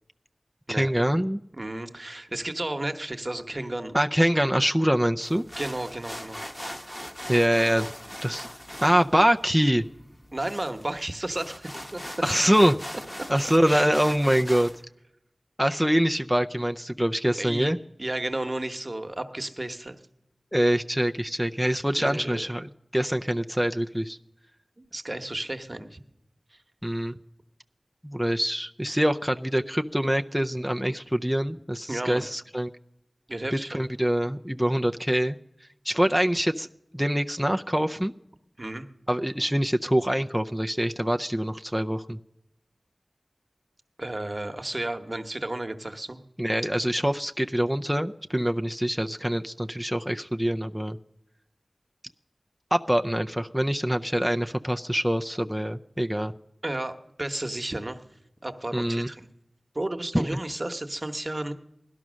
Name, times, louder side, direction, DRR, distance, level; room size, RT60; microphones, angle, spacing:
voice 1, 0.7-1.4 3.9-5.5 7.3-7.9 8.2-8.5 8.8-9.8 12.2-13.0 13.3-14.7 15.6-17.8 20.5-24.2 26.8-27.1 28.0-32.7 33.5-35.4 35.9-36.7 36.9-38.1 39.1-42.2 46.4-51.0 52.7-56.3 58.7-59.1 60.1-60.3, equal, 5° right, 5 dB, 0.5 m, -24 dB
voice 2, 1.5-3.9 5.6-6.4 10.3-12.0 13.7-13.9 17.4-17.7 18.0-20.0 22.0-22.5 24.8-26.0 31.9-32.3 33.3-33.8 38.6-38.8 44.0-46.2 56.6-58.0 58.4-59.3 59.7-61.5, right 1 dB, 35° right, 7 dB, 1.1 m, -33 dB
sound 1, 5.2-14.8, equal, 15° left, 1.0 m, -40 dB
17.0 x 12.0 x 6.2 m, 0.84 s
wide cardioid pair, 55°, 0 cm